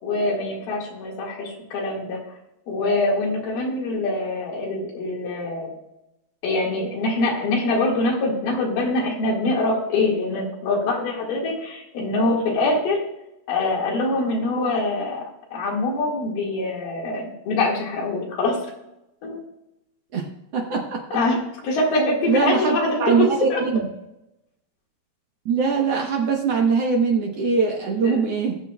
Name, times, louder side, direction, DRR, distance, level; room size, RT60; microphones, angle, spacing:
voice 1, 0.0-2.2 2.7-5.7 6.4-13.0 13.5-15.3 15.5-18.6 19.2-19.4 21.1-23.6 28.0-28.2, left 2 dB, 80° left, -1 dB, 3.8 m, -24 dB
voice 2, 20.1-21.0 22.3-23.9 25.4-28.6, right 5 dB, 75° right, 1 dB, 1.4 m, -22 dB
21.5 x 7.3 x 2.3 m, 0.87 s
omnidirectional pair, 4.4 m